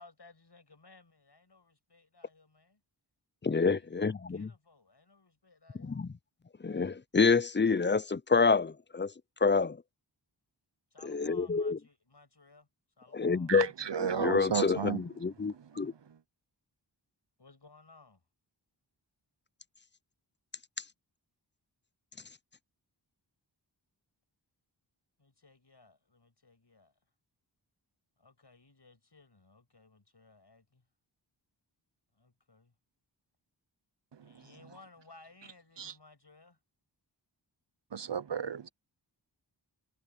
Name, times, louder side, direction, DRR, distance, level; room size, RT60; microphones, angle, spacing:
voice 1, 0.0-2.8 3.7-6.0 10.9-12.7 13.0-13.5 17.4-18.2 25.2-26.9 28.2-30.8 32.2-32.7 34.2-36.6, left 3 dB, 60° left, 7.5 m, -59 dB
voice 2, 3.4-4.5 5.8-6.1 6.6-9.1 9.4-9.8 11.0-11.8 13.1-13.7 14.2-15.9, left 4 dB, 25° left, 0.5 m, -27 dB
voice 3, 13.5-15.1 15.6-15.9 34.1-34.3 35.8-35.9 37.9-38.7, right 7 dB, 70° right, 0.8 m, -34 dB
wide cardioid pair, 55°, 45 cm